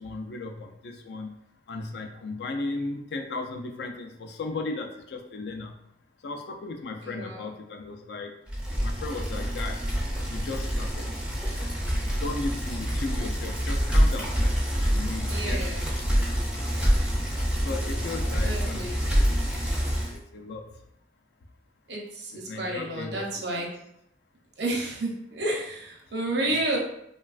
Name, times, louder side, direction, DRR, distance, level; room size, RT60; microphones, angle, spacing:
voice 1, 0.0-1.3 1.7-5.7 6.2-8.3 8.8-9.8 10.3-11.1 12.2-14.3 14.9-15.6 16.0-16.1 17.2-17.3 17.6-19.4 20.1-20.6 22.5-23.3 23.6-23.7 26.5-26.8, left 3 dB, 65° left, 4 dB, 0.4 m, -36 dB
voice 2, 7.0-7.4 15.2-15.8 18.4-19.0 21.9-23.7 24.6-26.8, right 1 dB, 75° right, -2 dB, 0.7 m, -31 dB
Bicycle, 8.5-20.2, equal, 5° right, 0.4 m, -26 dB
3.0 x 2.3 x 2.4 m, 0.77 s
head